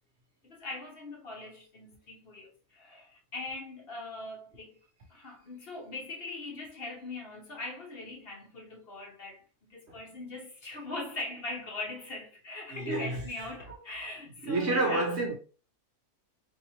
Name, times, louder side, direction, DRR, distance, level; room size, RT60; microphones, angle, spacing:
voice 1, 0.4-4.8 5.1-15.1, left 2 dB, 50° left, 0.9 m, -41 dB
voice 2, 12.7-13.2 14.4-15.4, right 2 dB, 60° right, 0.8 m, -29 dB
4.0 x 2.7 x 2.8 m
omnidirectional pair, 1.5 m